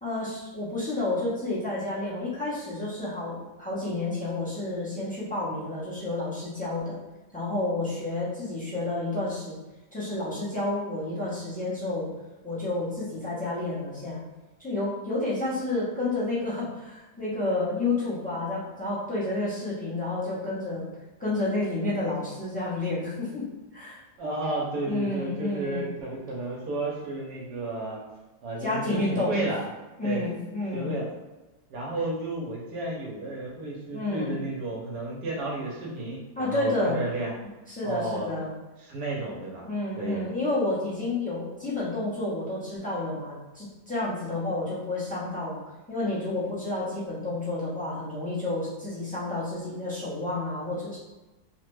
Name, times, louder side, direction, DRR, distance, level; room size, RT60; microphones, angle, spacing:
voice 1, 0.0-7.0 7.3-9.6 9.9-12.1 12.4-14.2 14.6-20.9 21.2-24.0 24.9-25.9 28.6-29.3 30.0-30.9 33.9-34.4 36.4-37.0 37.7-38.5 39.6-45.6 45.9-51.0, left 2 dB, 10° left, -10 dB, 0.6 m, -30 dB
voice 2, 24.2-28.0 28.4-29.7 30.0-30.2 30.7-31.0 31.7-37.3 37.8-38.3 38.8-39.6 40.0-40.3, right 2 dB, 85° right, -3 dB, 1.2 m, -32 dB
3.1 x 2.1 x 3.1 m, 1.1 s
omnidirectional pair, 1.7 m